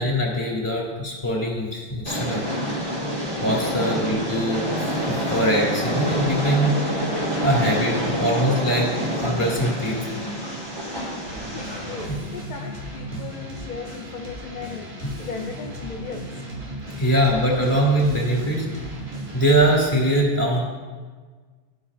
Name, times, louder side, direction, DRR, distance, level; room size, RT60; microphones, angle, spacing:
voice 1, 0.0-2.4 3.4-6.8 7.4-10.2 12.1-12.2 13.1-13.2 17.0-18.7 19.3-20.6, right 1 dB, 30° left, -2 dB, 2.0 m, -22 dB
Train, 2.1-12.1, equal, 20° right, 1.7 m, -27 dB
voice 2, 10.9-14.9 15.2-16.3, left 5 dB, 55° left, 1 dB, 0.6 m, -37 dB
sound 1, 11.3-19.9, right 1 dB, 70° right, 1.5 m, -36 dB
12.5 x 5.8 x 2.5 m, 1.5 s
omnidirectional pair, 1.1 m